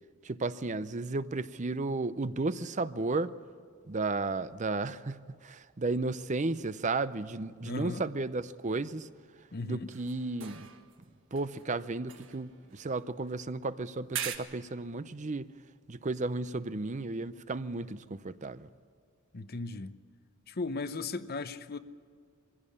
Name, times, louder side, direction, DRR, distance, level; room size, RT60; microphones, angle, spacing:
voice 1, 0.2-3.4 3.9-9.1 9.6-10.7 11.3-15.5 15.9-18.7, right 3 dB, 35° right, 0.6 m, -33 dB
voice 2, 7.6-8.0 9.5-9.9 19.3-20.0 20.5-21.8, left 3 dB, 45° left, 0.7 m, -36 dB
sound 1, 9.9-11.0 11.3-13.4 14.1-14.4, right 9 dB, 60° right, 1.5 m, -42 dB
22.5 x 16.0 x 8.5 m
head